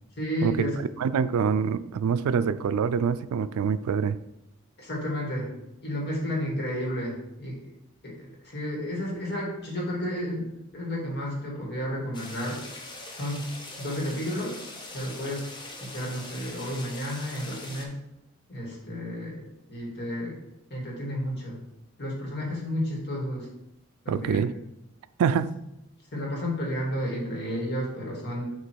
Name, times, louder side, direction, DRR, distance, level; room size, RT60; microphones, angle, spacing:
voice 1, 0.2-0.8 4.8-5.5 5.8-7.7 8.0-12.6 13.1-14.6 14.9-15.5 15.8-18.0 18.5-20.4 20.7-21.6 22.0-23.5 24.1-24.4 26.1-28.5, equal, 50° left, -2 dB, 1.9 m, -32 dB
voice 2, 1.0-4.2 24.1-24.5 25.2-25.5, right 6 dB, 80° right, 14 dB, 0.3 m, -25 dB
sound 1, 12.1-17.8, left 2 dB, 20° left, 0.7 m, -42 dB
7.7 x 3.0 x 4.5 m, 0.87 s
head